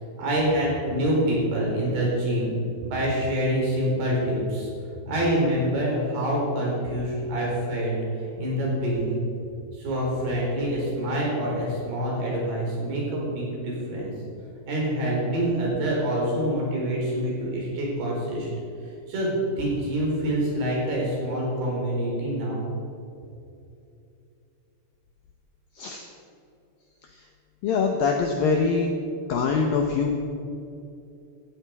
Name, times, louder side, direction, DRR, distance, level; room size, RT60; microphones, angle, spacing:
voice 1, 0.2-2.5 2.8-4.7 5.0-8.0 8.4-9.2 9.7-14.1 14.7-18.5 19.1-22.7, right 1 dB, 55° right, -3 dB, 6.3 m, -26 dB
voice 2, 27.6-28.9 29.3-30.1, left 5 dB, 80° left, 2 dB, 2.1 m, -23 dB
16.5 x 14.5 x 4.8 m, 2.7 s
omnidirectional pair, 5.6 m